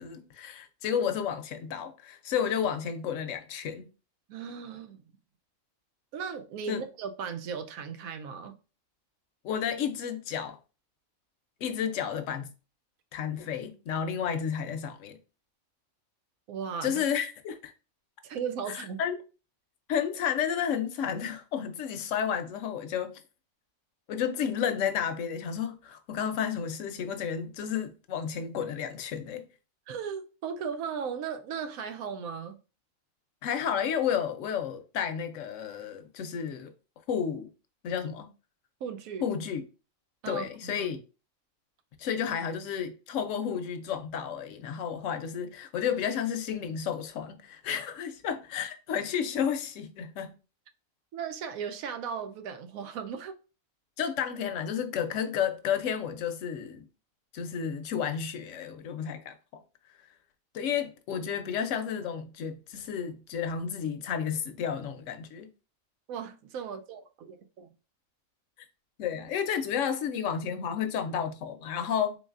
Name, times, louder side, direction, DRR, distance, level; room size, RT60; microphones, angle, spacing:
voice 1, 0.0-3.9 6.7-6.8 9.4-10.6 11.6-12.5 13.1-15.2 16.8-17.7 18.7-19.2 19.9-23.1 24.1-29.4 33.4-36.7 37.1-37.5 37.8-38.3 39.2-39.6 40.3-41.0 42.0-50.4 54.0-56.9 57.3-59.6 60.5-65.5 69.0-72.2, left 8 dB, 70° left, 0.9 m, -31 dB
voice 2, 4.3-5.0 6.1-8.6 16.5-17.0 18.2-19.0 29.9-32.6 38.8-39.2 40.2-40.9 51.1-53.4 66.1-67.7, right 7 dB, 90° right, 1.0 m, -37 dB
3.9 x 3.6 x 2.4 m
omnidirectional pair, 1.4 m